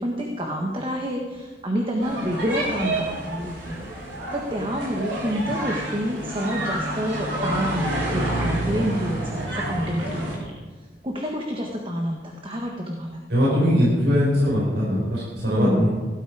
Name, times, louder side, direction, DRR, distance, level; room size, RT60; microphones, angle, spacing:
voice 1, 0.0-3.9 4.3-10.5 11.0-13.2 15.5-15.9, equal, 30° right, 1 dB, 1.4 m, -28 dB
sound 1, 2.0-10.4, right 1 dB, 90° right, 5.7 m, -29 dB
voice 2, 13.3-15.9, equal, 70° right, -7 dB, 5.5 m, -21 dB
17.0 x 12.5 x 4.9 m, 1.3 s
head